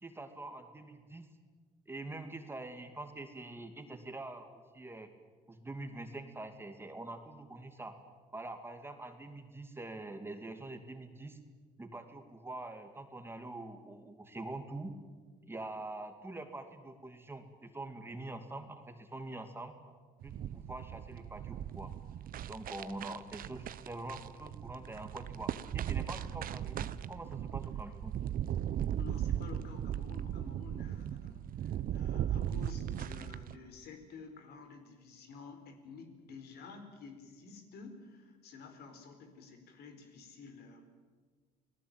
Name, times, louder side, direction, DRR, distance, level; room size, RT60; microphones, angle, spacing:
voice 1, 0.0-1.3 1.9-5.1 5.5-8.0 8.3-11.4 11.8-14.9 15.4-19.7 20.2-21.9 22.5-28.1, right 2 dB, 15° right, 6 dB, 2.6 m, -45 dB
sound 1, 20.2-33.6, right 10 dB, 55° right, 1.0 m, -38 dB
voice 2, 29.0-40.8, left 5 dB, 70° left, 6 dB, 4.7 m, -51 dB
28.5 x 19.0 x 9.1 m, 1.5 s
cardioid pair, 110°, 17 cm